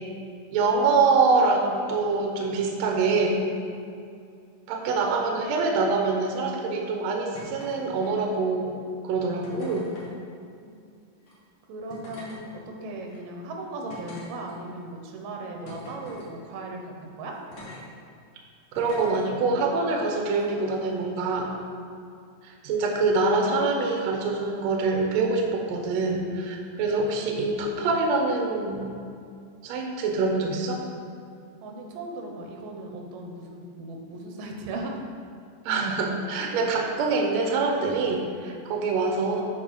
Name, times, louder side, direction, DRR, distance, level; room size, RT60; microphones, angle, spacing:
voice 1, 0.5-3.4 4.7-8.8 9.0-9.9 18.8-21.5 22.4-28.9 29.6-30.8 35.7-39.4, right 3 dB, 70° right, 1 dB, 1.8 m, -25 dB
sound 1, 7.3-7.7 8.0-8.5 9.4-10.1 11.2-11.3 11.9-12.4 13.1-13.2 13.9-14.8 15.7-16.3 17.5-17.8 18.8-19.2 20.3-20.4, left 1 dB, 50° left, 2.1 m, -44 dB
voice 2, 11.7-17.4 31.6-35.0, right 2 dB, 85° right, 1 dB, 2.6 m, -37 dB
8.2 x 4.7 x 5.5 m, 2.4 s
omnidirectional pair, 3.8 m